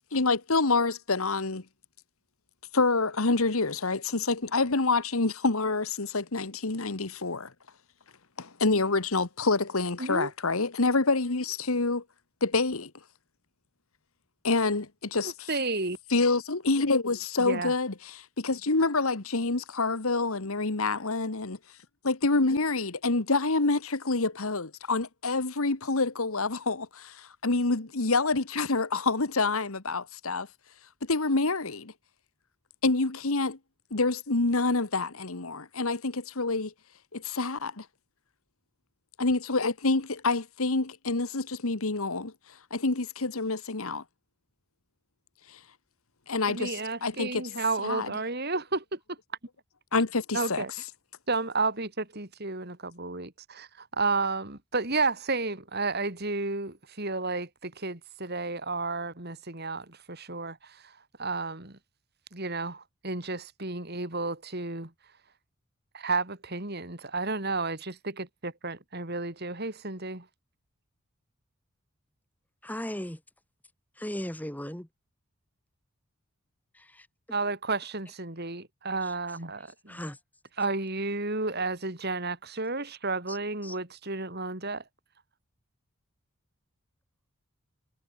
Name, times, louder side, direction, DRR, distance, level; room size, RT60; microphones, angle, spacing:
voice 1, 0.1-1.6 2.7-7.5 8.4-12.0 12.4-12.9 14.4-15.5 16.1-21.6 22.0-30.5 31.0-31.9 32.8-33.6 33.9-36.7 37.1-37.8 39.2-42.3 42.7-44.0 45.5-45.6 46.3-47.4 47.8-48.1 49.9-50.6, left 3 dB, 70° left, 1.5 m, -27 dB
voice 2, 10.0-10.3 15.2-16.0 17.4-17.7 46.5-49.2 50.3-50.7 51.3-61.8 62.3-64.9 65.9-70.3 77.3-80.0 80.6-84.8, right 3 dB, 45° right, 3.2 m, -32 dB
voice 3, 72.6-73.2 74.0-74.9 76.9-77.1 79.9-80.2 83.6-83.7, equal, 5° left, 1.7 m, -36 dB
head